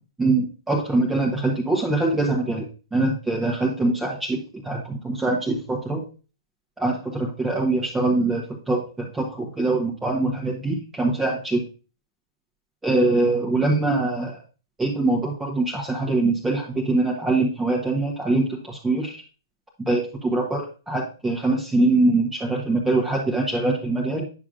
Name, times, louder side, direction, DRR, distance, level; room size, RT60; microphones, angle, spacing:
voice 1, 0.2-6.0 6.8-11.6 12.8-14.4 14.8-19.2 19.8-24.2, right 2 dB, 10° right, -2 dB, 1.3 m, -23 dB
9.6 x 5.9 x 2.5 m, 0.35 s
hypercardioid pair, 120°, 2 cm